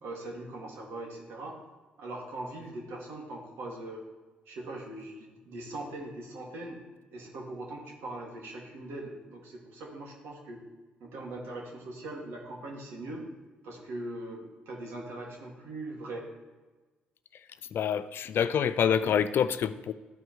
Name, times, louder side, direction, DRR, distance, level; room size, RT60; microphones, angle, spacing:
voice 1, 0.0-1.6 2.0-4.0 4.5-6.8 7.1-10.6 11.0-13.2 13.6-16.3, right 2 dB, 80° right, -2 dB, 2.0 m, -41 dB
voice 2, 17.7-19.9, left 8 dB, 65° left, 13 dB, 0.4 m, -27 dB
13.0 x 4.6 x 3.0 m, 1.3 s
supercardioid pair, 60°, 4 cm